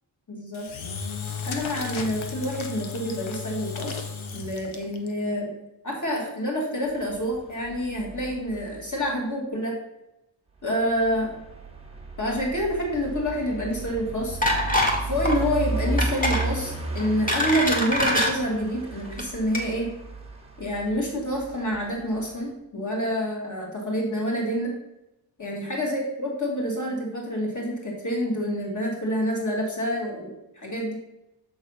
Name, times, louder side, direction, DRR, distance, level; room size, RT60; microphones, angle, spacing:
voice 1, 0.3-0.7 1.5-4.0 4.3-5.5 5.8-9.8 10.6-11.3 12.2-14.4 15.0-19.9 20.6-24.8 25.4-30.9, equal, 40° left, -2 dB, 2.3 m, -27 dB
Engine / Drill, 0.5-5.1, left 6 dB, 80° left, 0.9 m, -34 dB
sound 1, 6.9-9.1 10.7-22.5, right 2 dB, 15° right, 1.1 m, -34 dB
sound 2, 14.4-15.0 15.2-15.4 16.0-16.4 17.0-18.3 19.0-19.2 19.5-19.6, left 1 dB, 15° left, 1.6 m, -23 dB
6.9 x 3.9 x 5.6 m, 0.91 s
wide cardioid pair, 95°, 47 cm